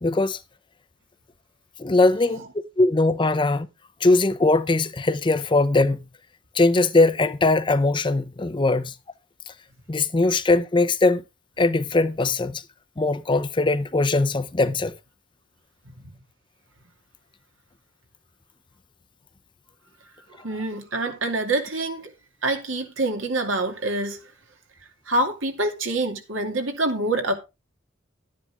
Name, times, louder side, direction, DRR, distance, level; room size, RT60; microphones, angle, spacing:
voice 1, 0.0-0.4 1.8-2.4 2.8-3.7 4.0-6.0 6.5-8.9 9.5-9.6 9.9-11.2 11.6-12.6 13.0-14.9, left 2 dB, 25° left, 0.5 m, -20 dB
voice 2, 20.3-22.1 22.4-24.2 25.1-27.3, right 2 dB, 80° right, 2.4 m, -26 dB
11.5 x 10.0 x 3.5 m
head